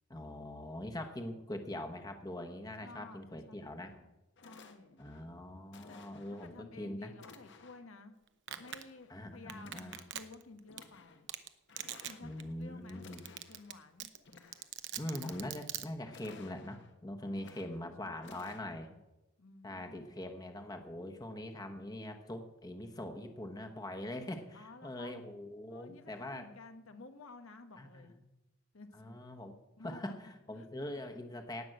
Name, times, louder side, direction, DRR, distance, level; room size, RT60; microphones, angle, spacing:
voice 1, 0.1-3.9 5.0-7.1 9.1-10.0 12.2-13.2 15.0-18.9 19.6-26.5 27.8-28.2 28.9-29.6 29.8-31.6, left 1 dB, 20° left, 5 dB, 1.1 m, -43 dB
voice 2, 2.8-4.1 4.4-5.0 5.9-6.0 6.3-8.1 8.6-11.3 12.0-14.1 17.2-19.0 19.4-20.1 24.5-25.1 25.7-28.2 28.7-29.1 29.8-30.2 30.5-30.7, left 3 dB, 90° left, 7 dB, 1.3 m, -54 dB
sound 1, 3.9-4.0 4.4-5.2 5.7-6.5 7.1-7.9 8.5-9.2 9.6-10.3 10.6-11.2 11.7-12.5 12.9-13.7 14.1-14.7 15.0-15.7 16.1-16.9 17.3-17.9 18.2-18.6, left 4 dB, 60° left, 1.3 m, -57 dB
Domestic sounds home sounds, 8.5-8.8 9.5-10.4 10.8-10.9 11.3-11.5 11.8-12.1 12.4-12.5 12.9-13.0 13.2-13.7 14.0-15.8, right 12 dB, 60° right, 0.8 m, -40 dB
18.0 x 6.1 x 7.7 m, 0.98 s
head